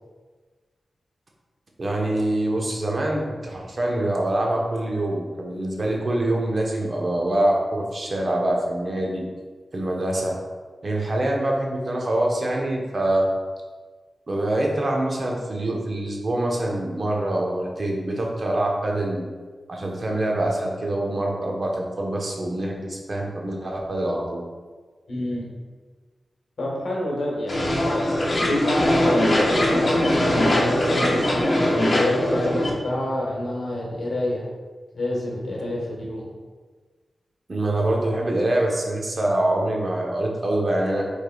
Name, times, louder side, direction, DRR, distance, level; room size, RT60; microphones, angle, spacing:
voice 1, 1.8-9.3 9.7-10.3 10.8-13.3 14.3-19.3 19.7-24.4 37.5-41.0, right 1 dB, 50° right, -1 dB, 0.9 m, -25 dB
voice 2, 25.1-25.5 26.6-28.0 28.4-34.4 34.9-36.3 38.6-38.7, left 1 dB, 80° left, -4 dB, 1.3 m, -28 dB
sound 1, 27.5-32.7, left 1 dB, 45° left, 1.0 m, -21 dB
5.0 x 4.6 x 2.3 m, 1.4 s
cardioid pair, 70°, 0 cm